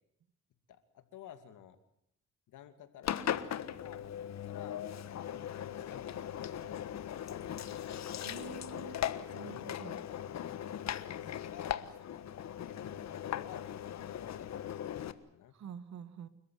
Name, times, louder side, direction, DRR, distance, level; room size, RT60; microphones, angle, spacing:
voice 1, 0.7-1.8 2.5-4.8 5.3-6.8 7.1-8.7 9.2-15.5, left 9 dB, 80° left, 10 dB, 2.7 m, -54 dB
Engine, 3.0-15.1, left 10 dB, 60° left, 1.5 m, -39 dB
voice 2, 8.2-9.0 9.3-10.0 15.5-16.3, right 7 dB, 65° right, 14 dB, 1.9 m, -47 dB
30.0 x 14.0 x 9.5 m, 0.75 s
cardioid pair, 90°, 30 cm